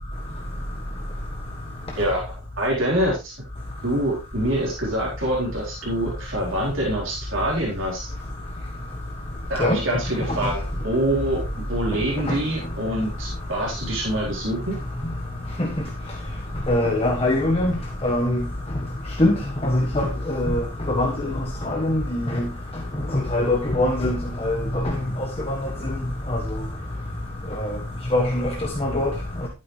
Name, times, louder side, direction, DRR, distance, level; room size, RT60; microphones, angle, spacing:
voice 1, 2.6-3.3 3.8-8.1 9.5-14.8, right 1 dB, 70° right, -5 dB, 4.2 m, -25 dB
voice 2, 16.7-17.7 18.0-18.4 19.2-19.3 19.6-20.6 20.9-21.3 21.7-22.4 23.3-24.2 24.4-24.6 24.8-24.9 26.3-26.4 27.6-27.7 28.1-28.5 28.8-29.1, left 1 dB, 30° left, 1 dB, 1.4 m, -22 dB
12.0 x 9.1 x 3.3 m, 0.27 s
head